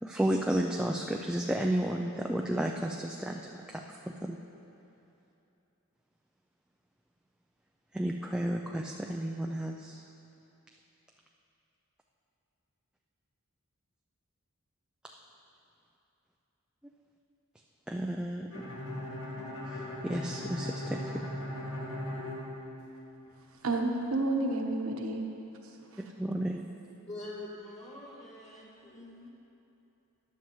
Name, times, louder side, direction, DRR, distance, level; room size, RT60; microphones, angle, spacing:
voice 1, 0.0-4.4 7.9-10.0 17.9-18.6 19.7-21.3 26.0-26.7, right 1 dB, 5° right, 1 dB, 0.3 m, -32 dB
Bowed string instrument, 18.5-23.3, left 1 dB, 75° left, 1.9 m, -38 dB
voice 2, 23.6-25.2 25.9-26.0, right 2 dB, 70° right, 2 dB, 1.1 m, -30 dB
voice 3, 27.1-29.3, left 2 dB, 30° left, -6 dB, 2.0 m, -44 dB
14.5 x 10.5 x 3.1 m, 2.9 s
head